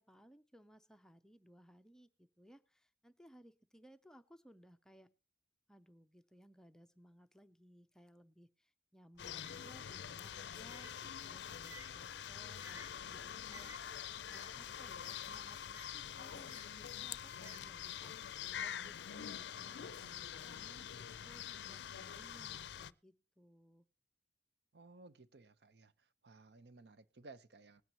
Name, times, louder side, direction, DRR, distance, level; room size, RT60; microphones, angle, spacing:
voice 1, 0.0-5.1 5.7-23.8, equal, 5° left, 0.4 m, -62 dB
Bird, 9.1-18.2, right 2 dB, 20° right, 1.2 m, -61 dB
sound 1, 9.2-22.9, left 9 dB, 80° left, 0.4 m, -46 dB
voice 2, 24.7-25.9 26.2-27.8, right 3 dB, 70° right, 0.7 m, -58 dB
20.5 x 9.2 x 2.8 m
head